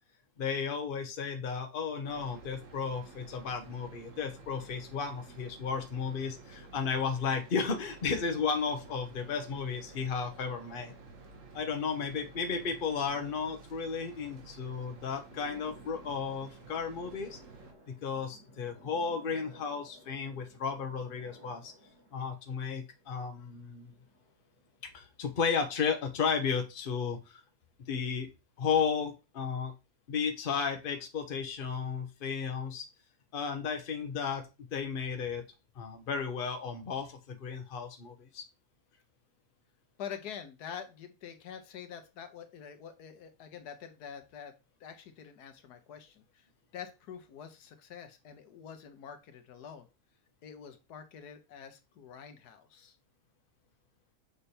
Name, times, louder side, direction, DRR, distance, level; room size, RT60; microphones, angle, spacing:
voice 1, 0.4-10.9 11.5-17.4 17.9-21.7 22.1-24.0 24.9-27.4 27.9-28.3 28.6-29.7 30.1-32.9 33.3-35.4 35.8-38.4, left 6 dB, 40° left, 5 dB, 1.0 m, -34 dB
sound 1, 2.0-17.7, right 3 dB, 55° right, 1.4 m, -52 dB
sound 2, 15.3-25.7, equal, 80° right, 2.8 m, -58 dB
voice 2, 40.0-44.5 44.8-46.5 46.7-49.9 50.4-53.0, left 8 dB, 85° left, 8 dB, 1.4 m, -46 dB
6.8 x 3.3 x 4.3 m, 0.28 s
omnidirectional pair, 1.7 m